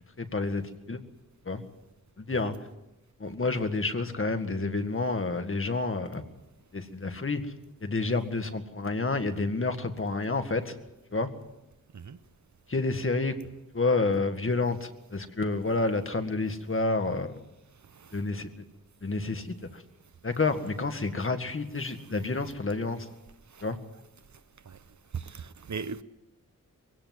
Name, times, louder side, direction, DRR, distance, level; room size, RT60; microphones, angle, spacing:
voice 1, 0.2-1.0 1.5-1.6 2.2-2.5 3.2-6.2 6.7-7.5 7.8-10.7 11.1-11.3 12.7-13.4 13.7-17.4 18.1-18.5 19.0-19.8 20.2-23.1 23.6-23.8, left 3 dB, 40° left, 1.9 m, -29 dB
voice 2, 17.9-18.2 21.8-22.1 23.5-23.6 24.6-24.8 25.1-26.0, right 5 dB, 60° right, 0.9 m, -39 dB
23.0 x 17.0 x 7.8 m
wide cardioid pair, 95°, 32 cm